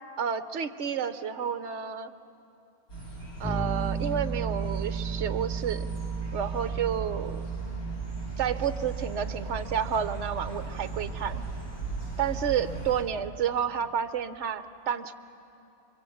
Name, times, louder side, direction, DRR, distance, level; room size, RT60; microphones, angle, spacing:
voice 1, 0.2-2.1 3.4-5.9 6.3-7.5 8.4-11.4 12.2-15.1, right 8 dB, 60° right, 11 dB, 1.1 m, -30 dB
sound 1, 2.9-13.0, right 2 dB, 85° left, 5.3 m, -40 dB
Bass guitar, 3.4-13.3, right 5 dB, 5° right, 1.7 m, -35 dB
28.5 x 23.5 x 8.6 m, 2.9 s
omnidirectional pair, 1.5 m